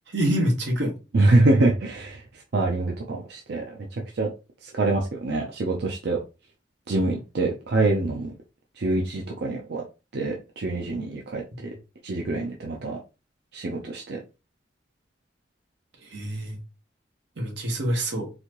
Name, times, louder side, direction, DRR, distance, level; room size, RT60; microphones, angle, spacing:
voice 1, 0.1-0.9 11.6-11.7 16.1-16.6 17.4-18.3, equal, 90° right, 1.3 m, -26 dB
voice 2, 1.1-2.2 2.5-3.6 3.9-4.3 4.6-6.2 6.9-8.3 8.8-9.8 10.1-11.4 12.0-13.0 13.5-14.2, right 2 dB, 65° right, 0.6 m, -24 dB
4.1 x 2.6 x 3.0 m
head